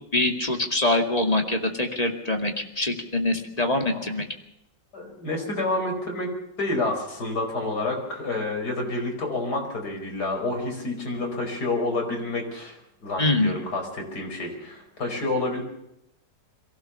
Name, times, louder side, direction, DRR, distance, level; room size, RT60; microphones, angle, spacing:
voice 1, 0.1-4.2 13.2-13.5, left 2 dB, 20° left, 3 dB, 2.3 m, -24 dB
voice 2, 4.9-6.3 6.6-15.6, left 2 dB, 60° left, 3 dB, 5.3 m, -29 dB
23.0 x 16.0 x 7.0 m, 0.81 s
omnidirectional pair, 1.9 m